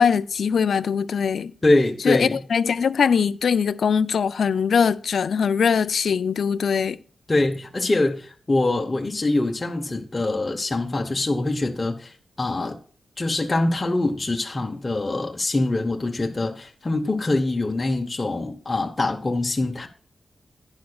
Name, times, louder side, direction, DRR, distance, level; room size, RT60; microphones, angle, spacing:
voice 1, 0.0-1.5 2.0-7.0, left 6 dB, 80° left, 0.3 m, -21 dB
voice 2, 1.6-2.4 7.3-12.8 13.2-19.9, left 2 dB, 25° left, 0.9 m, -24 dB
11.0 x 9.7 x 2.3 m
wide cardioid pair, 115°, 0 cm